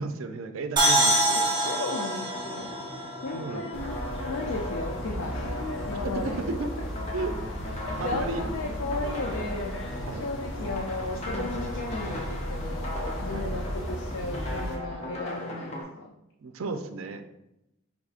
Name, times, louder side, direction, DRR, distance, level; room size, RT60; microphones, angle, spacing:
voice 1, 0.0-1.4 3.3-3.7 6.6-6.7 7.1-7.3 8.0-8.4 8.7-8.8 10.1-10.3 13.3-13.5 16.4-17.2, right 3 dB, 75° right, 7 dB, 0.4 m, -34 dB
sound 1, 0.8-4.3, right 1 dB, 20° right, 0.6 m, -26 dB
sound 2, 1.1-15.8, left 1 dB, 30° left, 0.7 m, -38 dB
voice 2, 1.4-2.8 3.2-3.9 4.3-5.4 5.9-6.4 7.8-9.8 10.2-12.9 13.2-16.1, left 3 dB, 85° left, 1 dB, 0.5 m, -35 dB
sound 3, 3.7-14.8, equal, 65° left, 0.9 m, -35 dB
4.9 x 3.5 x 2.4 m, 0.87 s
head